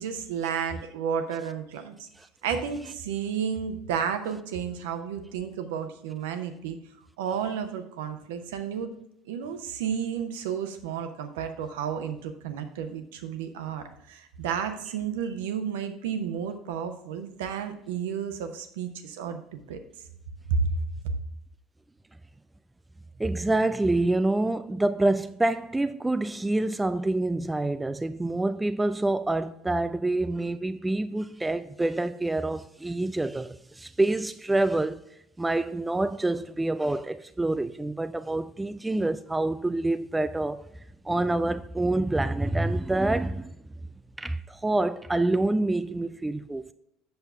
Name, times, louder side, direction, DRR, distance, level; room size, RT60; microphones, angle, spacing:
voice 1, 0.0-1.9 2.4-6.8 7.2-8.9 9.3-19.8 20.5-20.7 21.0-21.1, right 7 dB, 65° right, 0.8 m, -32 dB
voice 2, 23.2-35.0 35.4-40.6 41.0-43.5 44.2-46.7, right 2 dB, 10° right, 0.3 m, -27 dB
8.0 x 6.8 x 3.4 m
figure-of-eight pair, 65°, 0 cm